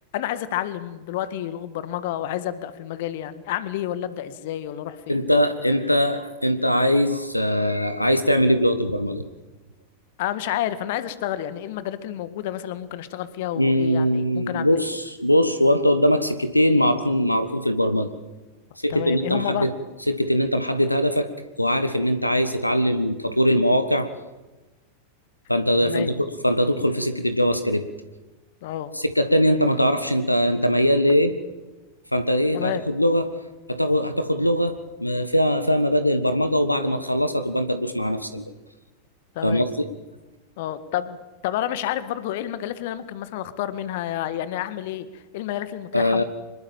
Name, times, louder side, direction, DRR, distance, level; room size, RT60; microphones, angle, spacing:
voice 1, 0.1-5.2 10.2-14.9 18.9-19.7 25.8-26.1 28.6-28.9 32.5-32.8 39.3-39.7 40.6-41.2 41.4-46.2, left 12 dB, 50° left, 13 dB, 1.8 m, -30 dB
voice 2, 5.1-9.2 13.6-18.1 18.8-19.7 20.1-21.3 21.6-24.1 25.5-27.9 28.9-31.4 32.1-33.3 33.7-38.5 39.4-39.7 45.9-46.2, equal, 90° left, 11 dB, 1.4 m, -21 dB
25.5 x 21.0 x 7.4 m, 1.1 s
figure-of-eight pair, 90°, 0 cm